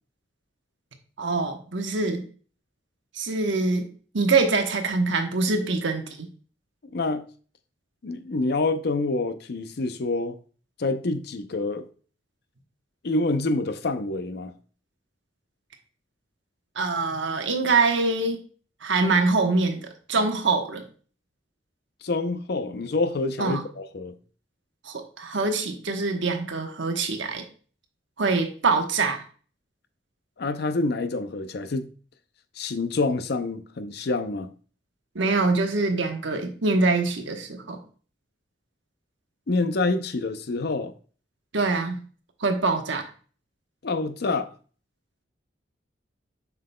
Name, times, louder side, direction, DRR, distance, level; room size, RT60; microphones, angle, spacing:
voice 1, 1.2-2.3 3.1-3.9 4.1-6.3 16.8-18.4 18.8-19.8 20.1-20.8 23.4-23.6 24.8-27.4 28.2-29.2 35.1-37.8 41.5-42.0 42.4-43.1, right 3 dB, 75° right, 1.1 m, -24 dB
voice 2, 6.9-7.2 8.0-10.4 10.8-11.8 13.0-14.6 22.0-24.2 30.4-31.9 32.6-34.5 39.5-40.9 43.8-44.5, left 3 dB, 60° left, 0.6 m, -27 dB
7.4 x 5.7 x 2.2 m
head